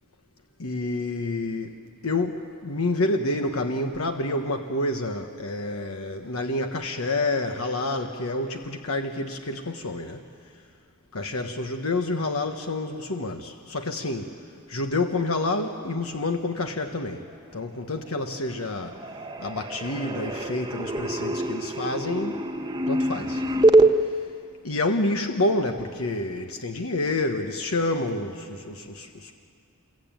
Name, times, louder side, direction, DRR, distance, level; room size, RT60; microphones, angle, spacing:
voice 1, 0.6-1.8 2.0-10.2 11.1-14.3 14.7-17.2 17.5-19.0 19.4-22.4 22.9-23.4 24.6-29.3, left 2 dB, 80° left, 5 dB, 1.3 m, -28 dB
sound 1, 17.9-18.5 18.7-23.9, right 2 dB, 20° right, 1.2 m, -24 dB
27.0 x 23.0 x 9.1 m, 2.3 s
head